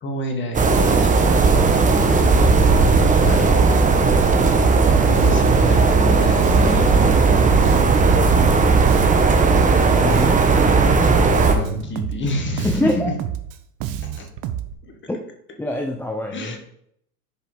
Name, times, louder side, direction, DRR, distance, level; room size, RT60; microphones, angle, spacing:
voice 1, 0.0-2.5 3.2-3.5 5.0-7.6 11.4-13.0 14.0-14.3 14.8-14.9 16.3-16.6, left 2 dB, 25° left, 4 dB, 1.7 m, -29 dB
sound 1, 0.5-11.5, right 4 dB, 15° right, 1.0 m, -16 dB
Bass guitar, 4.8-14.7, right 10 dB, 40° right, 0.8 m, -30 dB
voice 2, 9.9-10.4 12.6-13.1 15.1-15.2 15.6-16.6, left 1 dB, 5° left, 2 dB, 0.6 m, -24 dB
6.9 x 4.8 x 5.1 m, 0.69 s
hypercardioid pair, 105°, 48 cm